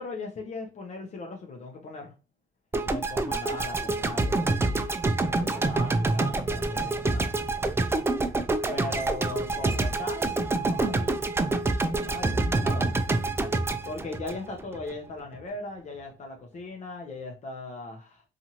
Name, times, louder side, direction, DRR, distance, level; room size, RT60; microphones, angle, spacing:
voice 1, 0.0-2.1 2.8-4.6 5.3-7.4 8.6-11.1 12.0-12.9 13.8-18.2, left 2 dB, 45° left, 1 dB, 0.7 m, -38 dB
sound 1, 2.7-14.9, right 2 dB, 15° right, 0.3 m, -27 dB
2.7 x 2.5 x 2.9 m, 0.32 s
cardioid pair, 95°, 16 cm